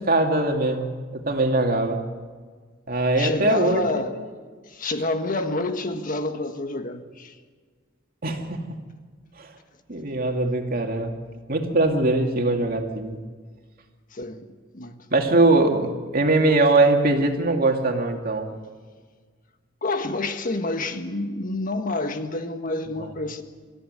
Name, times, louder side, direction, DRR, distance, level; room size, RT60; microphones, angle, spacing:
voice 1, 0.0-2.0 2.9-4.0 8.2-8.6 9.4-9.5 9.9-11.1 11.5-13.2 15.1-18.5 23.0-23.1, right 2 dB, 50° right, 2.5 m, -21 dB
voice 2, 3.2-4.3 4.6-7.4 14.1-14.5 14.7-14.9 19.8-23.4, left 2 dB, 45° left, 1.6 m, -28 dB
25.5 x 14.5 x 8.2 m
head